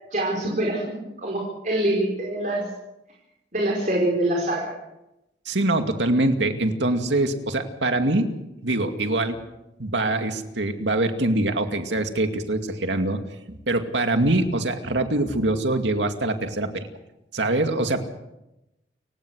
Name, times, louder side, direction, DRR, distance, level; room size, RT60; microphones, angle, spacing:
voice 1, 0.1-2.7 3.5-4.7, right 1 dB, 45° right, -1 dB, 4.9 m, -25 dB
voice 2, 5.5-8.4 8.6-9.4 9.8-13.2 13.5-16.9 17.3-18.0, right 2 dB, 90° right, 6 dB, 2.4 m, -24 dB
29.0 x 16.5 x 6.4 m, 0.90 s
head